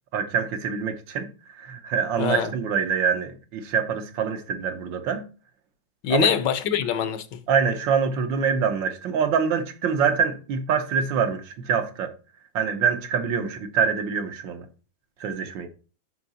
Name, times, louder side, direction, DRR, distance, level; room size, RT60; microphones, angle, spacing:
voice 1, 0.1-5.2 6.1-6.3 7.5-12.1 12.5-14.7 15.2-15.7, right 6 dB, 80° right, 1.7 m, -25 dB
voice 2, 2.2-2.5 6.0-7.4, left 9 dB, 70° left, 1.4 m, -24 dB
7.8 x 5.8 x 4.1 m
omnidirectional pair, 2.0 m